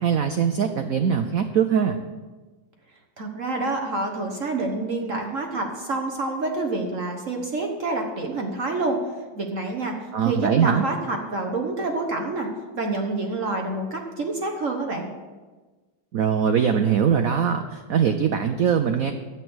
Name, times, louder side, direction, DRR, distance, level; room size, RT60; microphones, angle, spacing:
voice 1, 0.0-2.0 10.1-10.8 16.1-19.1, right 7 dB, 80° right, 7 dB, 0.7 m, -22 dB
voice 2, 3.2-9.0 9.3-12.5 12.7-15.1, right 2 dB, 45° right, 2 dB, 1.3 m, -27 dB
11.0 x 8.6 x 6.2 m, 1.3 s
omnidirectional pair, 2.3 m